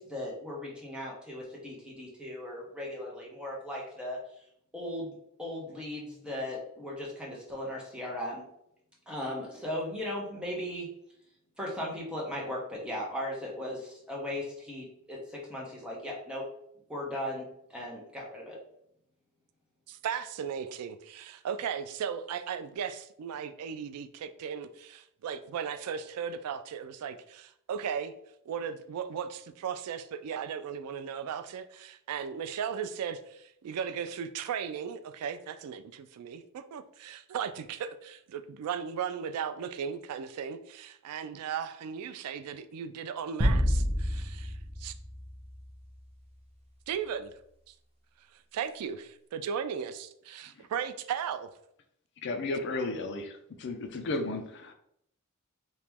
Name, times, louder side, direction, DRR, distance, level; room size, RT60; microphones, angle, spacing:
voice 1, 0.0-4.2 4.7-5.1 5.4-8.4 9.1-10.9 11.6-16.5 16.9-18.6, left 1 dB, 5° right, -4 dB, 0.9 m, -37 dB
voice 2, 19.9-28.1 28.5-44.9 46.9-47.3 48.5-51.5, right 7 dB, 85° right, 10 dB, 0.3 m, -36 dB
sound 1, 43.4-46.0, equal, 25° right, 0.6 m, -29 dB
voice 3, 52.2-54.7, left 2 dB, 50° left, 6 dB, 0.4 m, -34 dB
3.0 x 2.9 x 3.5 m, 0.73 s
head